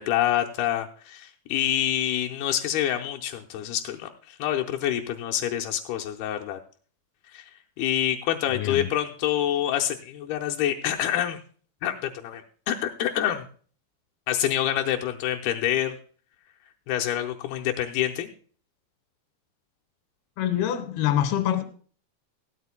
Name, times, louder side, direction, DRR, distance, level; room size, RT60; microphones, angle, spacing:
voice 1, 0.0-6.6 7.3-7.5 7.8-11.4 11.8-13.5 14.3-16.0 16.9-18.3, left 11 dB, 85° left, 2.3 m, -27 dB
voice 2, 20.4-21.6, left 11 dB, 70° left, 2.7 m, -25 dB
16.5 x 12.5 x 2.2 m
omnidirectional pair, 5.4 m